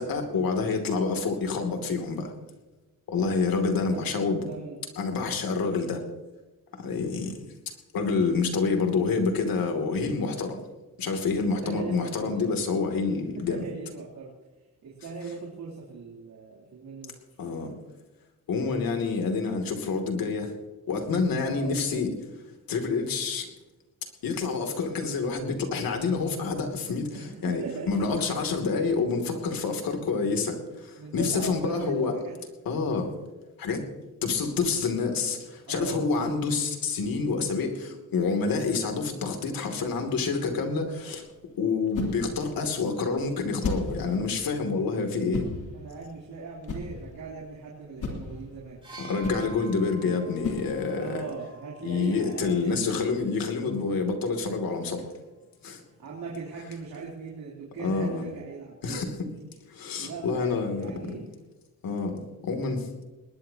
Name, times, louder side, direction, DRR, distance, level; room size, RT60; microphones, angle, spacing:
voice 1, 0.0-2.3 3.1-4.5 5.0-6.0 6.7-7.4 7.9-10.6 11.0-13.6 17.4-17.7 18.5-20.5 20.9-22.1 22.7-23.5 24.2-27.2 27.4-27.6 27.9-32.1 32.7-33.1 33.6-33.9 34.2-41.3 41.6-45.5 49.0-51.2 51.8-55.0 55.6-55.8 57.8-58.2 58.8-59.1 59.7-60.9 61.8-63.0, left 4 dB, 85° left, 4 dB, 2.8 m, -28 dB
voice 2, 3.1-3.5 3.7-4.8 11.4-12.7 13.0-14.3 14.8-17.2 21.5-22.0 27.1-28.1 31.0-32.4 35.7-36.3 45.7-48.8 51.0-53.2 54.9-55.0 56.0-59.1 60.0-61.3, right 4 dB, 80° right, -4 dB, 3.5 m, -39 dB
sound 1, 40.6-51.2, left 3 dB, 65° left, 3.5 m, -37 dB
sound 2, 48.8-52.6 53.7-53.8, right 3 dB, 15° right, 5.9 m, -48 dB
20.0 x 19.5 x 2.9 m, 1.2 s
wide cardioid pair, 170°, 34 cm